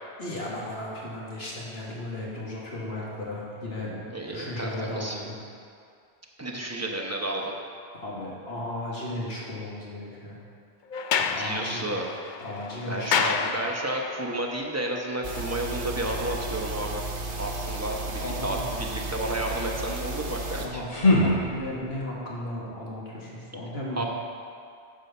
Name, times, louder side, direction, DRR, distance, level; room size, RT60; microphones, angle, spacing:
voice 1, 0.2-4.1 4.3-5.3 7.9-10.4 11.2-11.9 12.4-13.4 18.2-18.6 20.6-24.1, left 1 dB, 85° left, -5 dB, 2.1 m, -35 dB
voice 2, 4.1-5.2 6.4-7.5 11.4-12.1 12.9-17.0 17.4-20.8 23.9-24.0, right 1 dB, 15° right, 0 dB, 0.9 m, -31 dB
Sliding door, 10.9-14.2, left 6 dB, 60° left, 0.6 m, -29 dB
sound 1, 15.2-20.7, right 2 dB, 60° right, 1.0 m, -34 dB
sound 2, 20.4-22.1, left 1 dB, 40° left, 1.3 m, -24 dB
9.8 x 4.9 x 6.8 m, 2.3 s
omnidirectional pair, 1.0 m